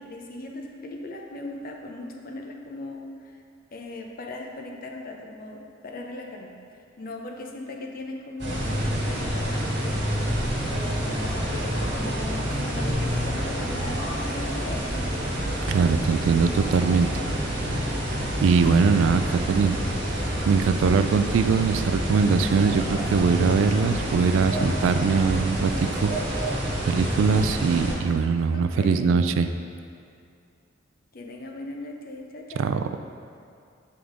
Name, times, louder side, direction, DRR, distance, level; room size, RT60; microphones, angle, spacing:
voice 1, 0.0-3.4 3.7-6.5 7.0-10.2 10.7-14.8 28.5-29.2 31.1-32.8, left 2 dB, 50° left, 1 dB, 0.6 m, -38 dB
sound 1, 8.4-27.9, equal, 60° right, 1.4 m, -28 dB
voice 2, 15.7-17.1 17.5-18.0 18.4-19.8 20.5-29.5 32.6-32.8, right 5 dB, 75° right, 10 dB, 0.3 m, -22 dB
7.9 x 3.5 x 3.7 m, 2.4 s
head